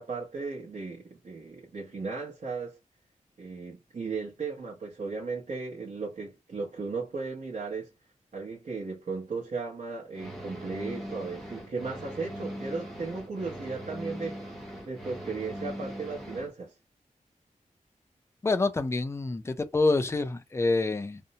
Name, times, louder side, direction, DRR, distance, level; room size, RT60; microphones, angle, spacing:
voice 1, 0.0-2.8 3.4-7.9 8.3-16.7, right 4 dB, 65° right, 0.9 m, -36 dB
sound 1, 10.1-16.5, equal, ahead, 0.9 m, -40 dB
voice 2, 18.4-21.2, left 3 dB, 20° left, 0.4 m, -27 dB
2.6 x 2.1 x 2.7 m
wide cardioid pair, 115°, 14 cm